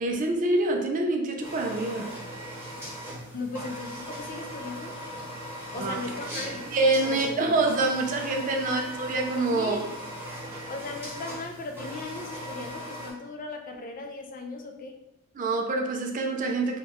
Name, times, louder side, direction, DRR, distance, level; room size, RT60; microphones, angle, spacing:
voice 1, 0.0-2.1 5.8-6.0 6.7-9.8 15.4-16.8, right 2 dB, 40° right, 3 dB, 0.4 m, -26 dB
sound 1, 1.4-13.1, equal, 10° right, 0.9 m, -39 dB
voice 2, 3.3-4.9 5.7-6.6 7.0-7.5 9.5-10.0 10.7-14.9, left 3 dB, 40° left, 3 dB, 0.4 m, -37 dB
3.5 x 2.3 x 2.9 m, 0.90 s
head